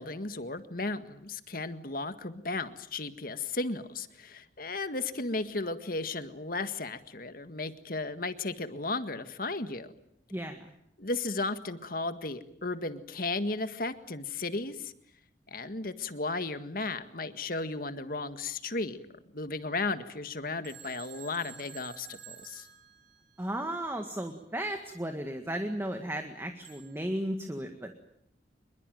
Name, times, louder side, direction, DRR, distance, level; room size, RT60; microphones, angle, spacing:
voice 1, 0.0-9.9 11.0-14.9 15.5-19.0 19.3-22.7, left 3 dB, 55° left, 10 dB, 1.8 m, -35 dB
voice 2, 10.3-10.7 23.4-27.9, right 1 dB, 15° right, 5 dB, 1.8 m, -35 dB
Telephone, 20.6-23.7 26.6-27.1, right 9 dB, 75° right, 6.6 m, -51 dB
26.5 x 22.5 x 9.2 m, 0.73 s
head